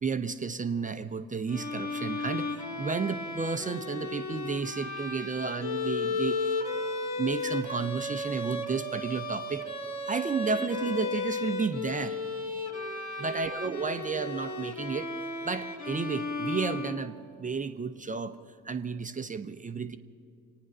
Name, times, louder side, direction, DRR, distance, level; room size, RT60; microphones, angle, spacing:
voice 1, 0.0-6.6 7.2-9.7 10.1-12.2 13.2-15.1 15.4-18.4 18.6-20.0, right 5 dB, 15° right, 9 dB, 0.6 m, -32 dB
Bowed string instrument, 1.5-17.4, left 2 dB, 35° left, 2.0 m, -34 dB
25.0 x 9.4 x 6.1 m, 2.4 s
figure-of-eight pair, 60°, 46 cm